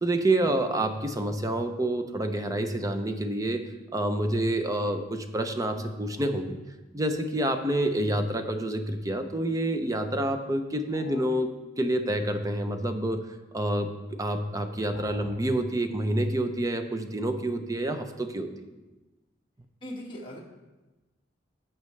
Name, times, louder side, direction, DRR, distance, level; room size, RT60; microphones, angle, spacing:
voice 1, 0.0-3.6 3.9-6.6 6.9-13.3 13.5-13.9 14.2-18.5, right 1 dB, 20° right, 7 dB, 0.6 m, -28 dB
sound 1, 10.9-11.4 14.9-15.4, left 3 dB, 55° left, 2.0 m, -48 dB
voice 2, 19.8-20.4, equal, 25° left, -4 dB, 1.6 m, -39 dB
14.5 x 6.0 x 3.2 m, 1.1 s
head